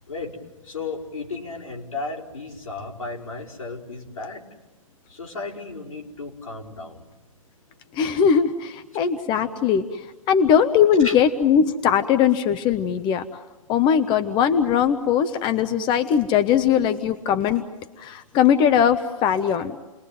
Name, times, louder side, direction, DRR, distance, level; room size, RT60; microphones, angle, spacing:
voice 1, 0.1-0.4 0.6-4.4 5.1-7.0 8.9-9.1 11.0-11.2, left 3 dB, 75° left, -3 dB, 4.9 m, -34 dB
voice 2, 7.9-13.3 13.7-17.6 18.0-19.7, left 8 dB, 25° left, 10 dB, 1.0 m, -20 dB
30.0 x 21.5 x 9.3 m, 1.1 s
figure-of-eight pair, 110°, 18 cm